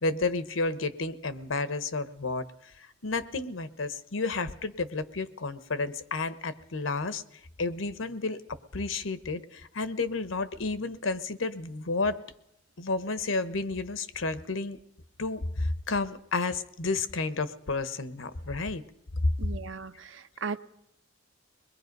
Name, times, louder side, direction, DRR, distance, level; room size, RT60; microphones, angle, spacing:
voice 1, 0.0-2.4 2.8-7.2 7.6-12.2 12.8-14.8 15.2-18.8, left 3 dB, 90° left, 13 dB, 1.1 m, -31 dB
voice 2, 19.4-20.6, right 5 dB, 75° right, 10 dB, 1.0 m, -37 dB
23.0 x 21.0 x 5.4 m, 0.75 s
head